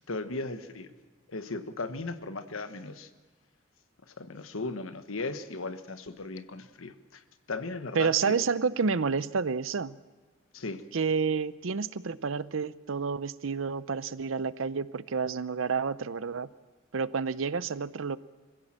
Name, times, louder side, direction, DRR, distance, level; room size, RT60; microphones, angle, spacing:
voice 1, 0.1-0.9 1.3-3.1 4.1-7.2 7.5-8.3 10.5-10.8, left 3 dB, 90° left, 10 dB, 1.3 m, -37 dB
voice 2, 7.9-10.0 10.9-16.5 16.9-18.2, right 5 dB, 80° right, 17 dB, 0.6 m, -29 dB
25.5 x 16.0 x 7.5 m, 1.4 s
head